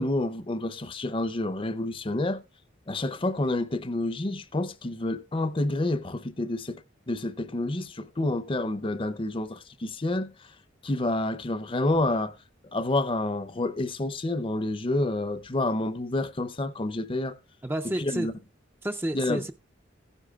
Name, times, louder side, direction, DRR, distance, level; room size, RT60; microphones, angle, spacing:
voice 1, 0.0-2.4 2.9-10.5 10.8-12.4 12.7-17.4 17.9-18.3 19.1-19.5, left 2 dB, 25° left, 0.6 m, -29 dB
voice 2, 17.6-18.3 18.8-19.5, right 1 dB, 10° right, 0.4 m, -30 dB
16.0 x 9.8 x 2.3 m
head